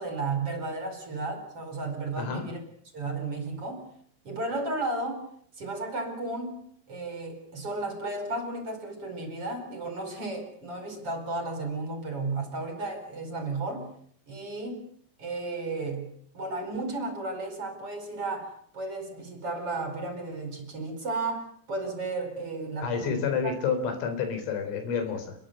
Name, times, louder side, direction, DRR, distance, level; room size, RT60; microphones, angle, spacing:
voice 1, 0.0-2.6 2.9-3.9 4.3-5.3 5.6-6.6 6.9-13.9 14.3-14.9 15.2-23.5, right 3 dB, 30° right, 5 dB, 5.4 m, -34 dB
voice 2, 2.2-2.5 22.8-25.3, left 6 dB, 90° left, 8 dB, 6.9 m, -29 dB
28.5 x 22.0 x 6.8 m, 0.62 s
omnidirectional pair, 5.7 m